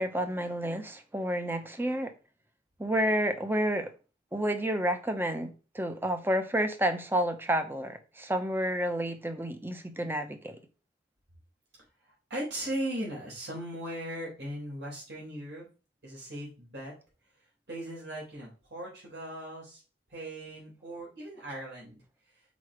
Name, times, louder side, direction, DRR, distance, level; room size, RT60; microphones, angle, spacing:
voice 1, 0.0-2.1 2.8-3.9 4.3-10.6, right 1 dB, 10° right, 0.8 m, -30 dB
voice 2, 12.0-15.7 16.0-16.9 17.7-19.8 20.1-22.0, right 1 dB, 75° right, 4.1 m, -38 dB
6.2 x 4.8 x 4.9 m
head